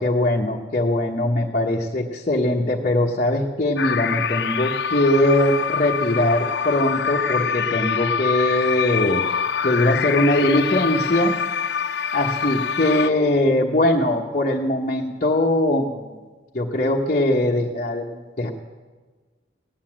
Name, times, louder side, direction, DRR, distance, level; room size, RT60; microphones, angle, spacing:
voice 1, 0.0-9.2 9.6-11.4 12.1-16.2 16.5-18.5, left 1 dB, 40° left, -3 dB, 1.2 m, -21 dB
sound 1, 3.8-13.1, left 7 dB, 60° left, 0.5 m, -25 dB
18.0 x 9.8 x 7.5 m, 1.3 s
head